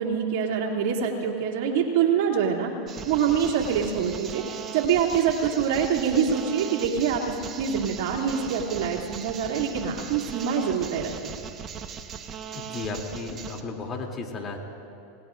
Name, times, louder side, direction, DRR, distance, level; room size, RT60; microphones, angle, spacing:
voice 1, 0.0-2.7 3.0-11.1, right 7 dB, 65° right, -1 dB, 2.6 m, -25 dB
sound 1, 2.9-13.6, right 7 dB, 35° right, 1.2 m, -39 dB
voice 2, 12.5-14.6, left 3 dB, 35° left, 1 dB, 2.9 m, -34 dB
28.5 x 19.5 x 2.6 m, 2.6 s
hypercardioid pair, 100°, 0 cm